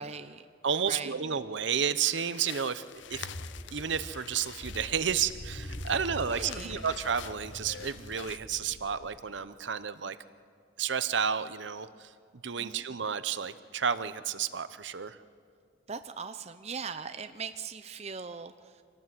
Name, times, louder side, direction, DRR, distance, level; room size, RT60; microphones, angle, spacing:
voice 1, 0.0-0.5 0.9-1.2 6.3-6.8 12.6-12.8 15.9-18.8, right 5 dB, 35° right, 9 dB, 0.6 m, -40 dB
voice 2, 0.6-2.8 3.1-3.3 3.7-10.2 10.8-12.1 12.4-15.2, right 7 dB, 70° right, 13 dB, 0.7 m, -31 dB
sound 1, 2.0-8.4, left 9 dB, 70° left, 0.6 m, -47 dB
sound 2, 3.0-9.3, equal, 35° left, 1.3 m, -44 dB
25.5 x 18.0 x 7.8 m, 2.2 s
head